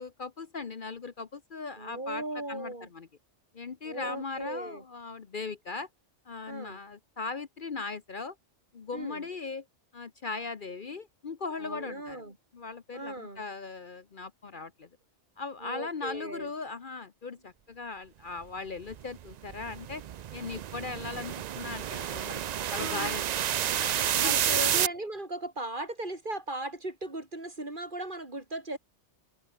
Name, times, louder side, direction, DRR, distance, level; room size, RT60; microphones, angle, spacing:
voice 1, 0.0-3.1 3.5-5.9 6.3-8.4 8.7-9.6 9.9-12.2 12.5-14.9 15.4-20.0 20.3-22.4 22.7-23.2 23.8-24.7, left 4 dB, 45° left, 1.1 m, -38 dB
voice 2, 1.8-2.9 3.8-4.8 6.5-6.8 8.9-9.3 11.6-12.4 12.9-13.5 15.6-16.5 22.8-23.2 24.0-28.8, right 2 dB, 45° right, 4.2 m, -38 dB
sound 1, 18.9-24.9, right 10 dB, 65° right, 0.4 m, -30 dB
omnidirectional pair, 1.2 m